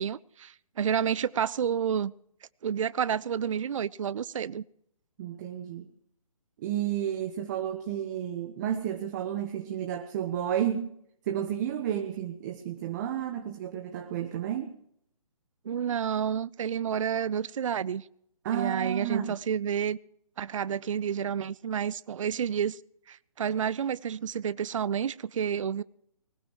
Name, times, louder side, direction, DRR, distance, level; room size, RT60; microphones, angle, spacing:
voice 1, 0.0-2.1 2.6-4.6 15.7-18.0 18.5-20.0 20.4-22.8 23.1-25.8, right 8 dB, 60° right, 20 dB, 0.5 m, -30 dB
voice 2, 5.2-5.9 6.6-10.9 11.3-14.7 18.4-19.4, right 10 dB, 30° right, 6 dB, 1.1 m, -31 dB
20.5 x 19.0 x 3.1 m, 0.70 s
figure-of-eight pair, 145°, 18 cm